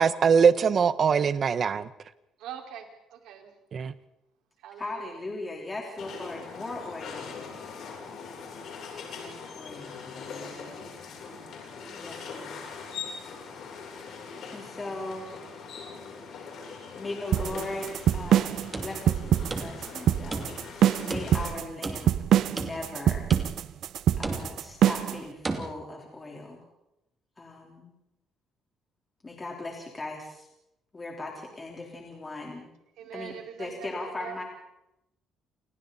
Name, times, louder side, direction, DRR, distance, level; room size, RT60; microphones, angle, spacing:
voice 1, 0.0-1.9 3.7-3.9, right 6 dB, 40° right, 1.2 m, -22 dB
voice 2, 2.4-3.5 4.6-4.9 33.0-33.9 34.2-34.4, right 9 dB, 80° right, 5.1 m, -42 dB
voice 3, 4.8-7.3 9.0-10.4 12.0-12.6 14.5-15.8 16.2-16.6 17.0-20.5 21.0-22.1 22.5-23.3 24.2-26.6 27.4-27.9 29.2-30.5 30.9-32.7 33.1-34.4, left 2 dB, 20° left, 4.0 m, -39 dB
sound 1, 6.0-21.5, left 5 dB, 60° left, 7.9 m, -42 dB
sound 2, 17.3-25.2, right 11 dB, 60° right, 1.0 m, -24 dB
sound 3, 18.6-20.0 20.3-20.8 21.1-22.2 22.6-23.0 23.3-23.8 24.2-24.7 25.4-25.7, right 3 dB, 20° right, 2.6 m, -35 dB
29.5 x 29.0 x 4.3 m
cardioid pair, 145°, 0 cm